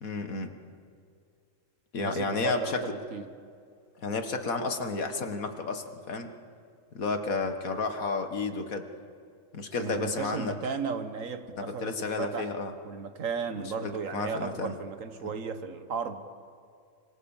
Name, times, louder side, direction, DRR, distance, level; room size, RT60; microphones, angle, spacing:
voice 1, 0.0-0.5 1.9-2.8 4.0-6.3 6.9-8.9 9.5-10.5 11.6-12.7 13.8-14.8, left 3 dB, 85° left, 6 dB, 2.1 m, -32 dB
voice 2, 2.0-3.3 9.8-12.6 12.8-16.3, right 5 dB, 70° right, 9 dB, 1.7 m, -35 dB
26.0 x 25.0 x 7.3 m, 2.3 s
omnidirectional pair, 1.4 m